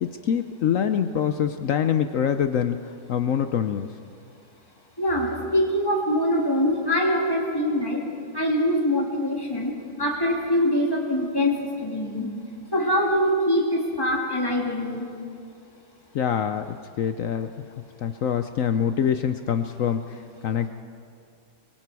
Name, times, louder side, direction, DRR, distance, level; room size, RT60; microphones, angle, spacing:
voice 1, 0.0-3.9 16.1-17.5 18.0-20.7, left 8 dB, 85° left, 9 dB, 0.7 m, -25 dB
voice 2, 5.0-8.0 8.3-9.7 10.0-12.3 12.7-15.1, equal, 10° left, -2 dB, 3.2 m, -23 dB
26.5 x 21.5 x 4.7 m, 2.4 s
omnidirectional pair, 2.2 m